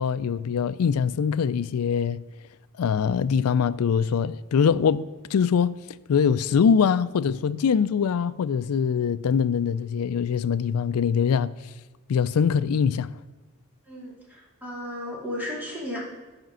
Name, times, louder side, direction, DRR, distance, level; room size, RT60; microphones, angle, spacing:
voice 1, 0.0-2.2 2.8-5.8 6.1-11.5 12.1-13.1, left 6 dB, 85° left, 0.4 m, -23 dB
voice 2, 13.9-16.0, left 1 dB, 10° right, 2.6 m, -34 dB
11.5 x 5.2 x 6.2 m
head